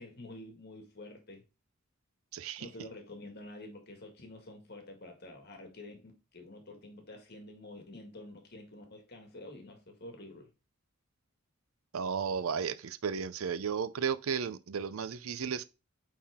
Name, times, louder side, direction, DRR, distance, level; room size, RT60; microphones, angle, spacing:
voice 1, 0.0-1.4 2.6-10.5, left 1 dB, 50° left, 1.8 m, -48 dB
voice 2, 2.3-2.7 11.9-15.7, right 6 dB, 85° right, 0.5 m, -34 dB
8.7 x 3.7 x 3.6 m
head